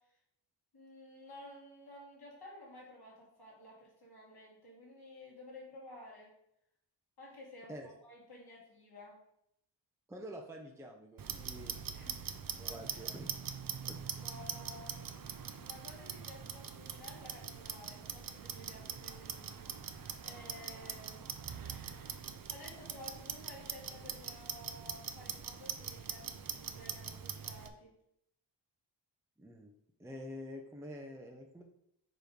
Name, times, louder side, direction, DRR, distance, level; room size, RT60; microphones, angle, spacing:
voice 1, 0.7-6.3 7.2-9.2 11.9-12.2 12.6-13.1 14.2-15.2 15.5-19.7 20.2-21.3 22.5-27.9, left 1 dB, 55° left, -5 dB, 2.6 m, -53 dB
voice 2, 10.1-11.8 12.2-13.3 13.8-14.1 29.4-29.7 30.0-31.6, equal, 5° right, 2 dB, 0.6 m, -47 dB
Clock, 11.2-27.7, right 7 dB, 50° right, 0.6 m, -43 dB
7.0 x 3.1 x 5.1 m, 0.76 s
wide cardioid pair, 125°, 45 cm